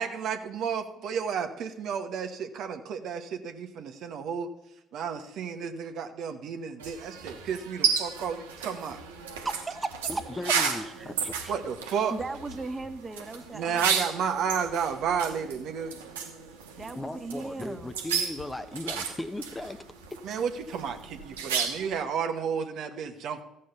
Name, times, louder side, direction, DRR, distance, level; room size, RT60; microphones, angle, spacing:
voice 1, 0.0-4.5 4.9-9.0 11.5-12.1 13.5-16.0 20.2-23.4, right 7 dB, 65° right, 5 dB, 1.1 m, -32 dB
sound 1, 6.8-22.0, right 6 dB, 90° right, 1.1 m, -33 dB
voice 2, 9.3-10.5 10.8-11.5 12.1-14.1 16.8-18.0, right 3 dB, 25° right, 8 dB, 1.4 m, -37 dB
voice 3, 10.4-11.1 17.0-19.8, left 1 dB, 15° left, 9 dB, 0.9 m, -37 dB
14.0 x 5.5 x 6.7 m, 0.90 s
hypercardioid pair, 55°, 0 cm